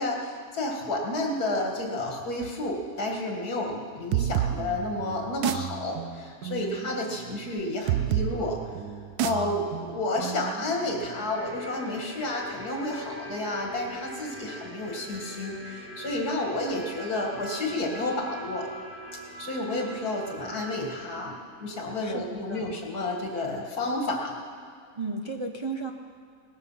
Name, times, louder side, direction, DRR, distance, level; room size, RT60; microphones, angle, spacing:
voice 1, 0.0-8.6 9.2-18.7 19.4-24.3, left 2 dB, 85° left, 1 dB, 2.4 m, -31 dB
sound 1, 4.1-11.5, right 11 dB, 90° right, 1.1 m, -31 dB
sound 2, 11.1-21.2, right 1 dB, 10° right, 1.6 m, -42 dB
voice 2, 22.0-22.8 25.0-25.9, right 3 dB, 40° right, 2 dB, 0.4 m, -34 dB
18.5 x 12.5 x 5.6 m, 2.1 s
omnidirectional pair, 1.6 m